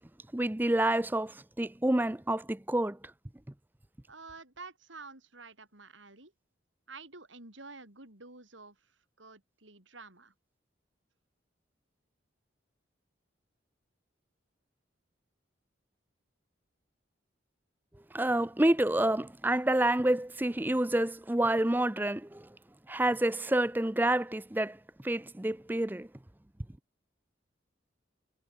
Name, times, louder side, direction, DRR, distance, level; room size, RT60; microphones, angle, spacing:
voice 1, 0.3-3.0 18.1-22.5 22.9-24.8 25.0-26.1, right 1 dB, 10° right, 0.5 m, -28 dB
voice 2, 4.1-6.3 6.9-10.3, right 3 dB, 80° right, 7.0 m, -50 dB
head